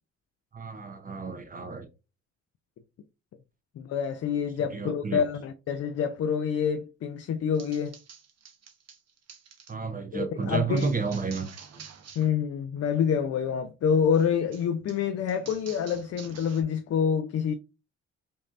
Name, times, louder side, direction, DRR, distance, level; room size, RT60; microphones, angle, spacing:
voice 1, 0.5-1.9 4.6-5.2 9.7-11.5, right 4 dB, 30° right, 0.7 m, -31 dB
voice 2, 3.8-8.0 10.1-10.9 12.2-17.5, left 7 dB, 55° left, 0.5 m, -27 dB
sound 1, 7.5-9.7 10.8-12.3 12.6-13.0 14.1-16.6, right 6 dB, 55° right, 1.0 m, -49 dB
5.2 x 2.7 x 2.5 m
cardioid pair, 90°, 30 cm